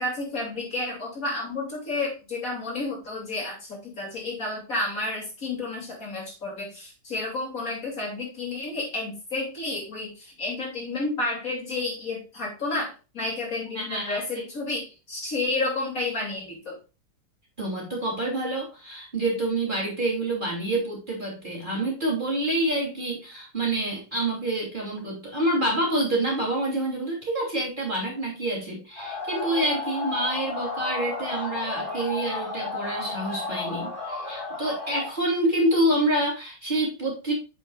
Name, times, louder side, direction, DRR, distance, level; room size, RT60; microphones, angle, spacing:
voice 1, 0.0-16.8, left 2 dB, 50° left, -2 dB, 3.2 m, -31 dB
voice 2, 13.7-14.4 17.6-37.3, right 1 dB, 25° right, -3 dB, 3.1 m, -27 dB
sound 1, 29.0-35.1, left 3 dB, 30° left, 2.1 m, -33 dB
7.9 x 7.4 x 2.4 m, 0.30 s
omnidirectional pair, 1.9 m